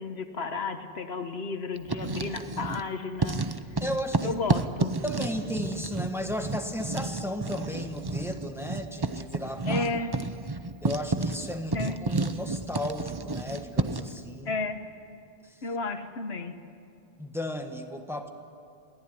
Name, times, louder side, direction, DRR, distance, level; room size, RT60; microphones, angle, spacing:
voice 1, 0.0-3.4 4.2-4.9 9.7-10.1 11.7-12.0 14.4-14.8 15.6-16.5, left 3 dB, 75° left, 8 dB, 1.5 m, -32 dB
Writing, 1.8-2.9 3.2-14.2, right 3 dB, 25° right, 0.7 m, -31 dB
voice 2, 3.8-4.4 5.0-9.8 10.8-14.6 17.2-18.3, left 1 dB, ahead, 5 dB, 1.4 m, -34 dB
22.0 x 17.5 x 9.7 m, 2.5 s
omnidirectional pair, 1.1 m